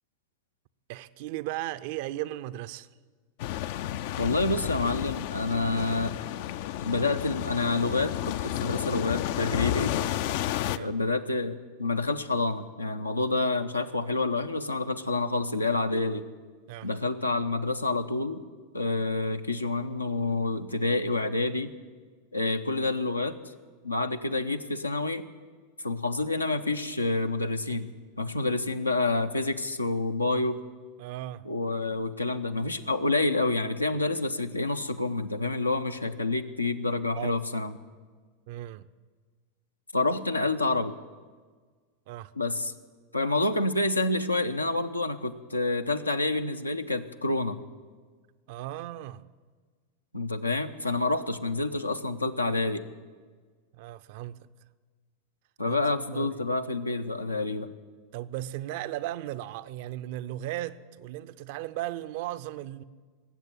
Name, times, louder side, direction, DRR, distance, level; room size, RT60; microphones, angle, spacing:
voice 1, 0.9-2.9 10.7-10.9 16.7-16.9 31.0-31.4 37.2-37.4 38.5-38.9 42.1-42.3 48.5-49.2 53.8-54.4 55.7-56.4 58.1-62.8, right 14 dB, 50° right, 0.5 m, -36 dB
sound 1, 3.4-10.8, left 13 dB, 50° left, 0.4 m, -31 dB
voice 2, 4.2-6.2 6.8-10.0 10.8-16.2 16.8-18.4 18.7-21.7 22.3-23.4 23.8-25.2 25.8-27.9 28.2-30.6 31.4-37.7 39.9-41.0 42.4-42.7 43.1-47.6 50.1-52.9 55.6-57.7, left 2 dB, 85° left, 0.7 m, -28 dB
19.5 x 8.0 x 9.1 m
figure-of-eight pair, 85°, 0 cm